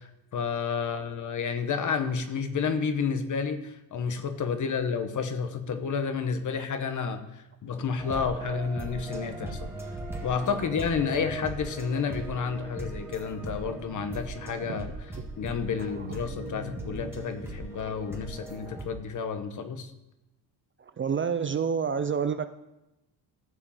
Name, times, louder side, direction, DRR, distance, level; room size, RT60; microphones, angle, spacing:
voice 1, 0.0-9.7 10.2-19.9, left 6 dB, 45° left, 9 dB, 1.2 m, -31 dB
sound 1, 8.0-18.9, right 2 dB, 5° right, 1.7 m, -38 dB
voice 2, 8.1-8.6 14.7-14.8 16.0-16.1 21.0-22.4, right 6 dB, 30° right, 11 dB, 0.4 m, -29 dB
14.5 x 5.1 x 7.3 m, 0.94 s
cardioid pair, 140°, 41 cm